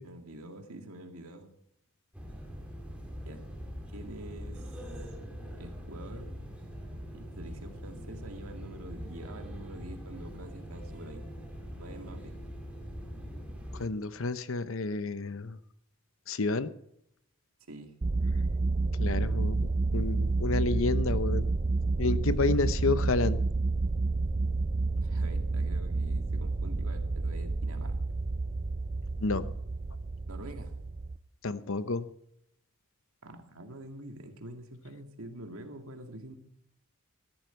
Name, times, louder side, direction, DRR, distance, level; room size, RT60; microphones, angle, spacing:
voice 1, 0.0-1.5 3.2-3.5 3.9-4.7 5.6-6.4 7.1-11.3 11.8-12.4 17.7-18.0 25.0-28.0 30.3-30.7 33.2-36.3, right 1 dB, 85° right, 5 dB, 2.3 m, -46 dB
sound 1, 2.1-13.9, equal, 5° right, 2.5 m, -42 dB
voice 2, 13.7-15.6 16.3-16.7 19.0-21.5 22.0-23.4 29.2-29.4 31.4-32.1, left 3 dB, 70° left, 13 dB, 0.8 m, -30 dB
sound 2, 18.0-31.2, right 3 dB, 30° right, 0.4 m, -29 dB
15.5 x 13.5 x 4.5 m, 0.75 s
head